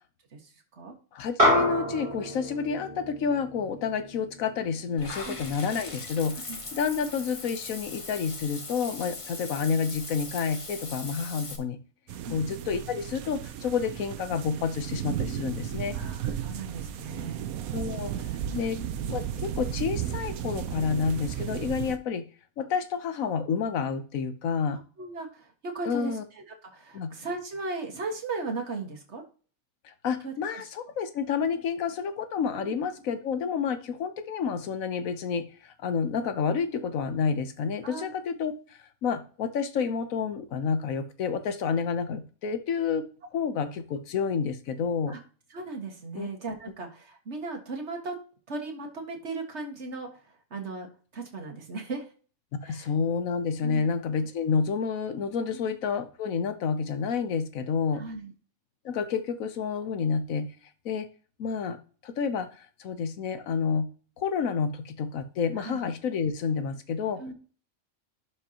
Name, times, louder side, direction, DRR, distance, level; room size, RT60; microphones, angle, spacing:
voice 1, 0.3-1.0 5.2-5.4 6.5-6.6 12.2-12.4 15.9-17.4 18.5-18.9 24.7-29.2 30.2-30.3 32.5-32.8 37.8-38.1 45.1-45.2 45.5-48.2 48.5-52.1 52.6-52.9 53.6-53.9 55.5-55.6 57.9-58.3 65.6-65.8 67.2-67.3, right 3 dB, 50° right, 2 dB, 1.9 m, -37 dB
voice 2, 1.1-6.4 6.7-11.8 12.3-15.9 17.7-18.1 18.5-18.8 19.1-22.2 22.6-24.8 25.9-26.2 26.9-27.1 29.8-38.5 39.0-43.1 43.3-45.2 46.1-46.3 52.6-58.0 58.8-60.5 60.8-61.1 61.4-61.8 62.0-63.9 64.2-67.2, left 6 dB, 70° left, 10 dB, 1.2 m, -29 dB
sound 1, 1.4-6.0, equal, 30° right, 3.7 m, -29 dB
Water / Bathtub (filling or washing), 5.0-11.6, left 3 dB, 25° left, 1.0 m, -40 dB
sound 2, 12.1-22.0, right 10 dB, 80° right, 1.1 m, -34 dB
11.5 x 5.2 x 2.9 m, 0.39 s
omnidirectional pair, 1.5 m